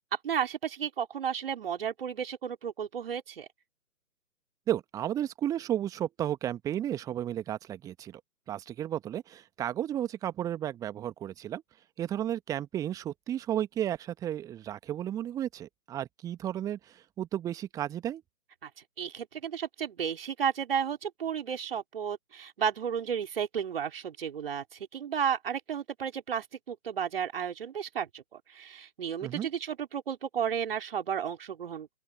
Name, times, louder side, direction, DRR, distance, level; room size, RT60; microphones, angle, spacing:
voice 1, 0.2-3.5 18.6-18.7 19.0-32.0, right 8 dB, 40° right, 4.4 m, -33 dB
voice 2, 4.7-8.2 8.5-11.6 12.0-18.2 29.2-29.5, right 11 dB, 10° right, 1.6 m, -33 dB
open air
figure-of-eight pair, 140°, 42 cm